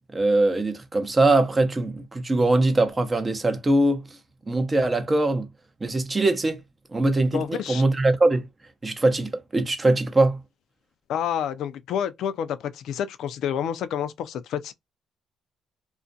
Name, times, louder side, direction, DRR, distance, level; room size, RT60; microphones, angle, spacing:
voice 1, 0.1-4.0 4.5-5.5 5.8-6.6 6.9-8.5 8.8-10.4, right 2 dB, 25° right, 0.6 m, -22 dB
voice 2, 7.3-7.8 11.1-14.7, left 9 dB, 80° left, 0.4 m, -29 dB
2.4 x 2.1 x 2.5 m
cardioid pair, 90°, 0 cm